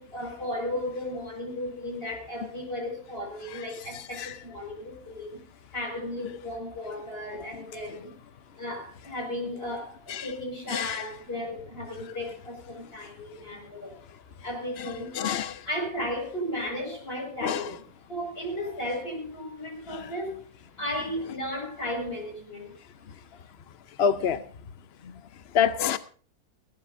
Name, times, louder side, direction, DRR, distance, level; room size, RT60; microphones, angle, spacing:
voice 1, 0.0-5.4 5.7-8.1 8.6-14.0 14.4-15.3 15.6-17.8 18.1-20.4 20.8-22.7, left 1 dB, 30° left, 6.0 m, -35 dB
voice 2, 10.7-11.0 15.2-15.6 17.4-17.7 19.9-20.1 24.0-24.4 25.5-26.0, left 7 dB, 60° left, 0.6 m, -26 dB
20.0 x 16.0 x 2.6 m
omnidirectional pair, 2.0 m